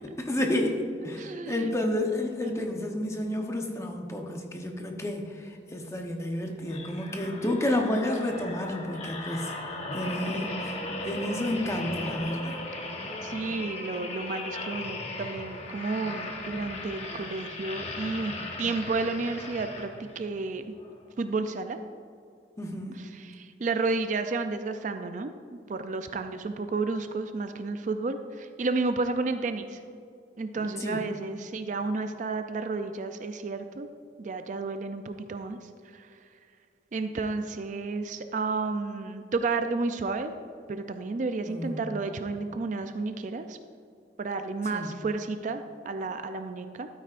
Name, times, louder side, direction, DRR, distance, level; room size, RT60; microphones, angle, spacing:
voice 1, 0.0-9.5 9.9-10.8 11.0-12.6 22.6-23.0 30.6-31.0 41.5-41.9 44.7-44.9, left 1 dB, 15° left, 2 dB, 0.8 m, -30 dB
voice 2, 1.2-1.7 2.4-2.6 13.2-18.3 18.6-20.6 21.2-21.8 23.0-25.3 25.7-29.8 30.4-33.9 34.2-35.6 35.9-36.1 36.9-40.3 40.7-43.6 44.2-46.9, right 3 dB, 45° right, 8 dB, 0.4 m, -31 dB
sound 1, 6.6-20.2 20.8-21.0, left 2 dB, 35° left, 1.1 m, -37 dB
12.5 x 8.9 x 2.5 m, 2.4 s
head